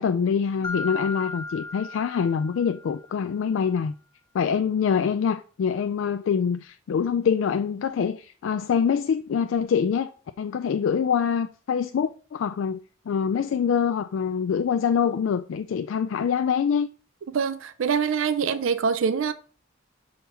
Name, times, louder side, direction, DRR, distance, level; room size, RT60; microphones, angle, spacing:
voice 1, 0.0-3.9 4.3-10.1 10.4-12.8 13.1-16.9, left 7 dB, 65° left, 0.3 m, -25 dB
Mallet percussion, 0.6-3.2, left 3 dB, 20° left, 0.8 m, -36 dB
voice 2, 17.3-19.3, right 6 dB, 70° right, 0.4 m, -24 dB
6.9 x 3.9 x 4.1 m
head